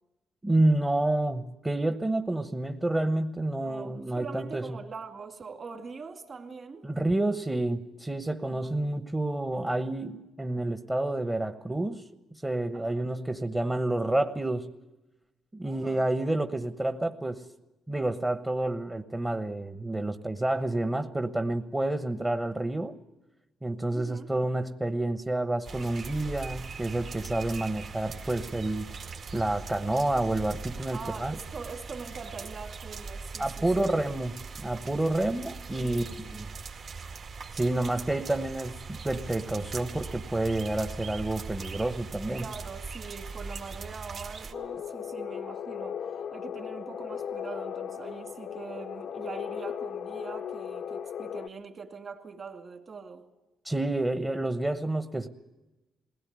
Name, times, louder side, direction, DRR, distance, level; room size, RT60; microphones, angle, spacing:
voice 1, 0.4-4.8 6.8-12.1 12.4-14.7 15.5-17.4 17.9-23.0 23.6-28.9 29.3-31.4 33.4-36.5 37.5-42.5 53.6-55.3, right 2 dB, 15° right, 1.1 m, -29 dB
voice 2, 3.6-6.9 8.5-9.0 12.7-13.1 15.6-16.1 23.9-24.3 30.9-33.7 35.7-36.5 42.4-46.0 46.3-53.3, right 5 dB, 40° right, 2.4 m, -43 dB
sound 1, 25.6-44.5, right 4 dB, 55° right, 2.2 m, -40 dB
sound 2, 44.5-51.5, left 8 dB, 65° left, 0.7 m, -37 dB
21.0 x 17.0 x 9.6 m
cardioid pair, 90°, 0 cm